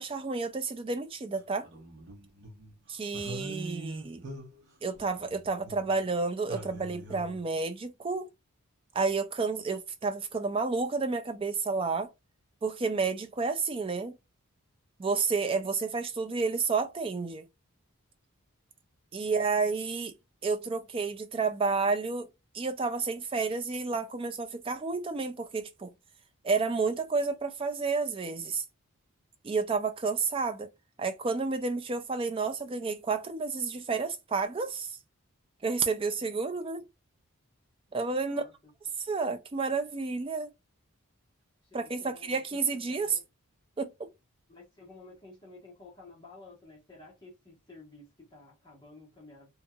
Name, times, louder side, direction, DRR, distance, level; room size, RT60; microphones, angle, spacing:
voice 1, 0.0-1.7 2.9-4.2 4.8-8.3 8.9-12.1 12.6-14.1 15.0-17.5 19.1-20.1 20.4-22.3 22.5-25.9 26.4-28.6 29.4-30.7 31.0-35.0 35.6-36.8 37.9-38.4 39.0-40.5 41.7-43.2 43.8-44.1, right 4 dB, 25° right, 0.3 m, -30 dB
sound 1, 1.3-2.7 3.1-6.2 6.5-7.4, right 1 dB, 55° right, 0.8 m, -43 dB
voice 2, 38.3-38.7 41.7-43.2 44.5-49.5, left 2 dB, 20° left, 1.1 m, -53 dB
2.8 x 2.7 x 2.3 m
head